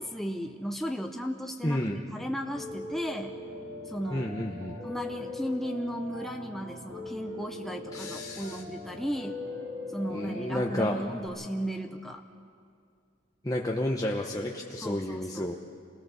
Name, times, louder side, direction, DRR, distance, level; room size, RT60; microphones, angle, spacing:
voice 1, 0.0-1.8 2.1-3.4 3.9-4.3 4.8-9.4 9.9-12.2 14.8-15.5, equal, ahead, 3 dB, 0.7 m, -35 dB
voice 2, 1.6-2.0 4.1-4.8 7.9-8.6 10.1-11.1 13.4-15.5, left 1 dB, 20° left, -1 dB, 1.0 m, -31 dB
Piano, 2.5-11.3, left 2 dB, 85° right, 4.7 m, -40 dB
27.0 x 18.5 x 7.0 m, 2.3 s
head